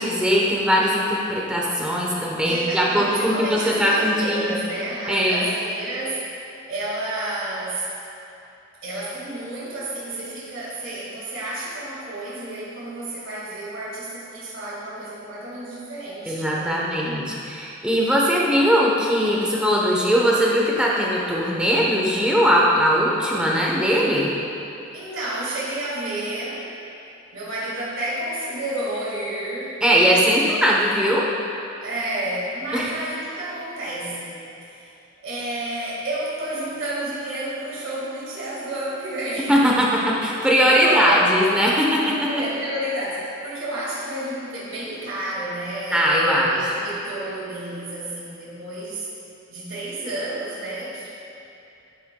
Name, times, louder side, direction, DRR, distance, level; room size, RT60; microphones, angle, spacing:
voice 1, 0.0-4.5 5.1-5.4 16.3-24.3 29.8-31.3 32.7-32.9 39.5-42.3 45.9-46.5, equal, 5° right, -4 dB, 0.8 m, -20 dB
voice 2, 2.4-6.3 6.7-7.9 8.8-16.8 24.9-26.7 27.3-29.8 31.8-34.9 35.2-39.6 40.6-41.3 42.3-49.1 49.5-51.1, right 1 dB, 65° right, -7 dB, 1.8 m, -30 dB
11.0 x 7.7 x 2.2 m, 2.7 s
head